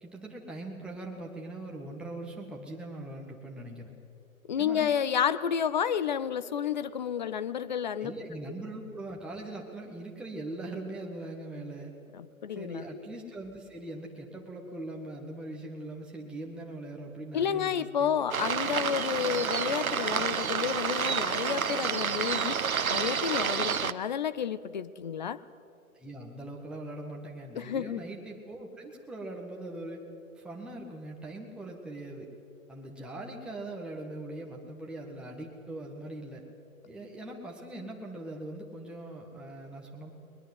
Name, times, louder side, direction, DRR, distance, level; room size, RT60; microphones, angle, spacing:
voice 1, 0.0-3.9 4.6-4.9 8.0-12.0 12.5-18.2 25.9-30.0 30.4-32.3 32.7-36.4 36.9-40.1, right 1 dB, ahead, -2 dB, 1.7 m, -41 dB
voice 2, 4.5-8.1 12.1-12.8 17.3-25.4 27.5-28.0, left 8 dB, 35° left, 15 dB, 0.5 m, -31 dB
sound 1, 18.3-23.9, right 6 dB, 75° right, 1.0 m, -29 dB
21.0 x 21.0 x 7.9 m, 2.5 s
figure-of-eight pair, 125°, 42 cm